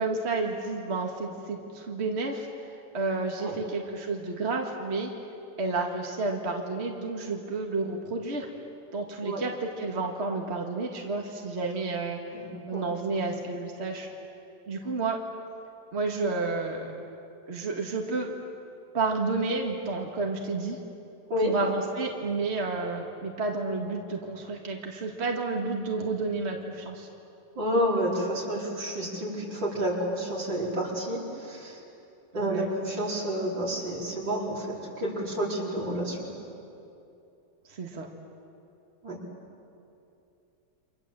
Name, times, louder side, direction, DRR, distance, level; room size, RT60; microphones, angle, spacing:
voice 1, 0.0-2.5 2.9-5.1 5.6-8.5 8.9-12.2 12.7-14.1 14.7-15.2 15.9-16.9 17.5-18.3 18.9-20.8 21.4-27.1 32.4-32.6 37.7-38.1, right 3 dB, 35° right, 1 dB, 2.2 m, -30 dB
voice 2, 12.3-12.9 21.3-21.5 27.6-31.8 32.3-36.3 39.0-39.2, equal, 75° right, -3 dB, 5.3 m, -30 dB
29.5 x 26.0 x 7.7 m, 2.7 s
omnidirectional pair, 2.0 m